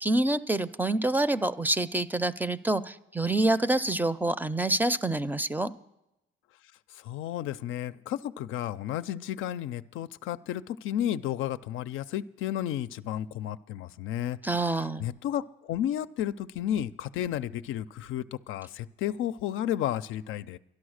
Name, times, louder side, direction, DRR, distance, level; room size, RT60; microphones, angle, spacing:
voice 1, 0.0-5.7 14.4-15.1, right 2 dB, 10° right, 14 dB, 0.5 m, -27 dB
voice 2, 6.9-20.6, left 11 dB, 85° left, 13 dB, 0.4 m, -32 dB
12.0 x 11.5 x 6.4 m, 0.89 s
cardioid pair, 90°, 20 cm